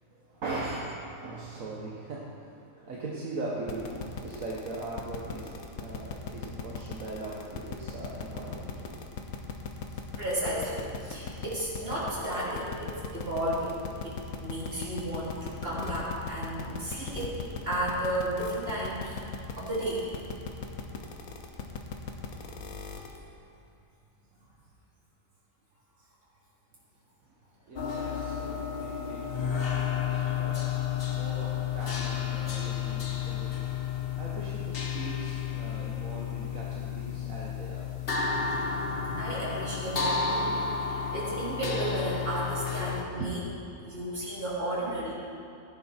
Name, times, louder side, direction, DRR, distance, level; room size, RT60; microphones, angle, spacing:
voice 1, 0.3-9.0 27.7-30.8 31.1-33.8 34.2-37.9 43.2-43.3, right 2 dB, 65° right, -5 dB, 1.8 m, -40 dB
sound 1, 3.7-23.2, left 5 dB, 80° left, 1.5 m, -38 dB
voice 2, 10.2-19.2 19.6-20.0 37.0-37.1 38.3-40.5 40.8-43.4 43.8-45.1, right 1 dB, 40° right, -8 dB, 3.8 m, -33 dB
sound 2, 27.8-43.0, left 7 dB, 45° left, 1.0 m, -32 dB
16.0 x 10.0 x 4.4 m, 2.6 s
omnidirectional pair, 1.5 m